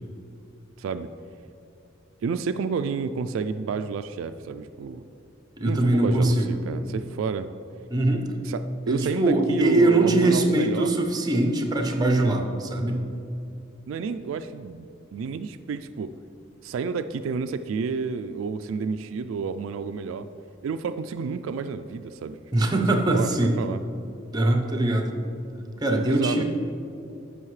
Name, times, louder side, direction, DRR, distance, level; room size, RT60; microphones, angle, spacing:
voice 1, 0.8-1.1 2.2-5.0 5.6-7.5 8.4-10.9 13.9-16.1 16.6-20.3 20.6-22.4 23.1-23.8 26.0-26.4, right 5 dB, 75° right, 9 dB, 0.3 m, -30 dB
voice 2, 5.6-6.6 7.9-8.3 8.9-13.0 22.5-23.6 24.3-25.1 25.8-26.4, right 2 dB, 20° right, 3 dB, 0.8 m, -22 dB
14.5 x 5.4 x 3.2 m, 2.8 s
head